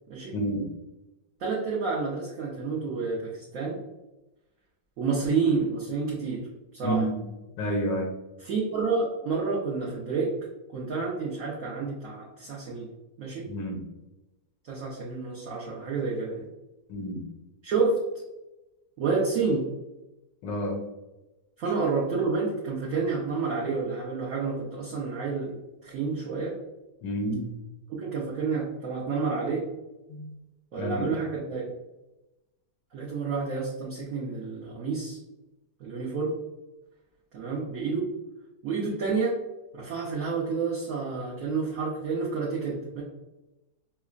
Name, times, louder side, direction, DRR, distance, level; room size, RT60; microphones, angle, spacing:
voice 1, 0.3-0.7 6.8-7.2 7.6-8.1 13.5-13.8 16.9-17.2 20.4-20.8 27.0-27.5 30.1-30.3 30.8-31.2, right 1 dB, 85° left, 1 dB, 1.5 m, -30 dB
voice 2, 1.4-3.8 5.0-6.4 6.7-7.0 8.4-10.3 10.7-12.9 13.2-13.5 14.6-16.4 17.6-18.0 19.0-19.6 21.6-26.5 27.9-29.6 30.7-31.6 32.9-35.2 35.8-36.3 37.3-38.1 38.6-39.4 39.7-43.0, right 4 dB, 60° right, -5 dB, 0.9 m, -29 dB
5.5 x 2.0 x 2.4 m, 1.0 s
omnidirectional pair, 1.9 m